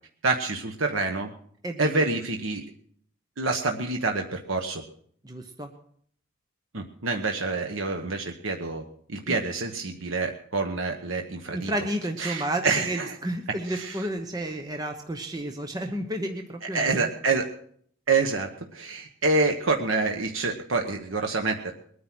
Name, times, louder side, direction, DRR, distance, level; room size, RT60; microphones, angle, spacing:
voice 1, 0.2-1.3 1.8-2.6 3.4-4.8 6.7-8.8 9.1-11.7 12.2-13.2 13.6-14.0 16.6-17.5 18.1-21.7, right 3 dB, 75° right, 4 dB, 1.1 m, -27 dB
voice 2, 1.6-2.0 5.2-5.7 9.3-9.4 11.5-17.1, right 1 dB, 20° right, 5 dB, 1.0 m, -31 dB
21.5 x 9.6 x 6.1 m, 0.62 s
head